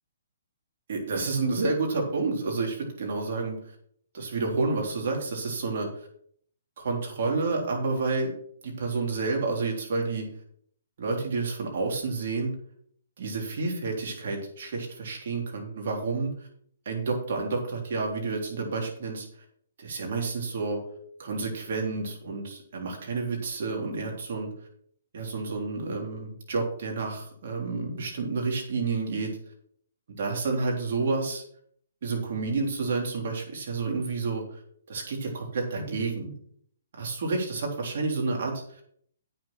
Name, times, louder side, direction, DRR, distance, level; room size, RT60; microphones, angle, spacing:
voice 1, 0.9-3.6 4.1-5.9 6.8-8.3 8.6-10.3 11.0-12.5 13.2-16.3 16.9-19.3 19.8-20.8 21.2-24.5 25.1-29.3 30.2-31.4 32.0-34.6 34.9-36.3 36.9-38.5, right 3 dB, 55° right, 0 dB, 3.5 m, -29 dB
8.6 x 6.7 x 6.1 m, 0.64 s
hypercardioid pair, 135°, 0 cm